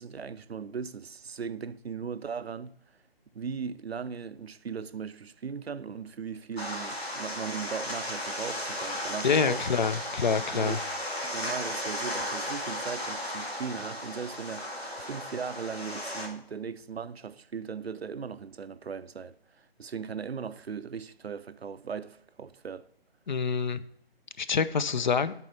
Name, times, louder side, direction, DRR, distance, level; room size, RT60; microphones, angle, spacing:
voice 1, 0.0-2.7 3.3-9.6 10.5-10.8 11.2-14.7 15.0-22.9, right 6 dB, 90° right, 0.5 m, -38 dB
sound 1, 6.6-16.3, left 1 dB, 90° left, 2.0 m, -35 dB
voice 2, 9.2-10.8 23.3-23.8 24.4-25.3, left 5 dB, 50° left, 0.5 m, -26 dB
9.6 x 4.5 x 5.7 m
figure-of-eight pair, 145°, 30 cm